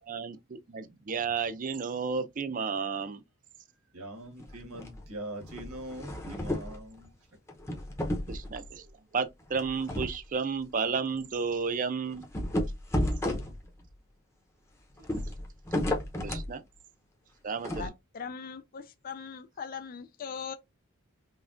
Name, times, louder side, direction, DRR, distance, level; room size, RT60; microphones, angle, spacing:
voice 1, 0.0-3.2 8.3-8.9 9.1-12.2 16.2-16.6 17.4-17.9, right 5 dB, 35° right, 0.4 m, -32 dB
voice 2, 3.9-7.1, right 1 dB, 85° right, 1.5 m, -42 dB
sound 1, 4.4-5.0 5.4-6.8 7.5-8.7 9.5-10.2 10.6-10.7 11.1-11.2 12.2-13.9 15.0-16.5 17.6-17.9, left 1 dB, 10° left, 0.8 m, -33 dB
voice 3, 17.8-20.5, left 6 dB, 40° left, 0.4 m, -40 dB
5.5 x 2.3 x 2.5 m
head